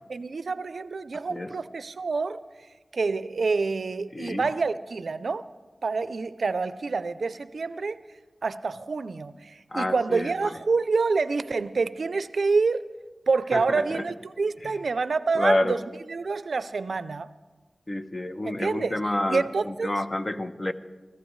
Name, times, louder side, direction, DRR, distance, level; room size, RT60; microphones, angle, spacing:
voice 1, 0.1-2.4 2.9-5.5 5.8-8.0 8.4-12.8 13.3-17.3 18.4-19.0 19.3-19.9, right 4 dB, 85° right, 14 dB, 0.4 m, -27 dB
voice 2, 4.1-4.5 9.7-10.5 13.5-14.0 14.6-14.8 15.3-15.8 17.9-20.7, left 1 dB, 30° left, 9 dB, 0.8 m, -28 dB
24.0 x 14.5 x 3.2 m, 1.3 s
wide cardioid pair, 70°, 0 cm